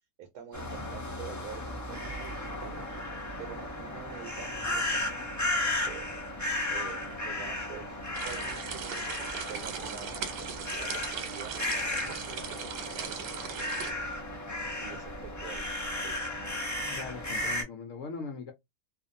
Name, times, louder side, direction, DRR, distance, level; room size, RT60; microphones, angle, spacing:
voice 1, 0.2-2.9 3.4-6.1 6.7-9.2 9.5-14.1 14.5-15.7 15.9-16.4, right 8 dB, 65° right, 1.1 m, -47 dB
sound 1, 0.5-17.6, left 1 dB, 30° left, 0.3 m, -35 dB
sound 2, 8.1-13.9, right 7 dB, 85° right, 1.3 m, -39 dB
voice 2, 16.9-18.5, left 5 dB, 70° left, 0.7 m, -40 dB
2.6 x 2.5 x 2.5 m
omnidirectional pair, 1.8 m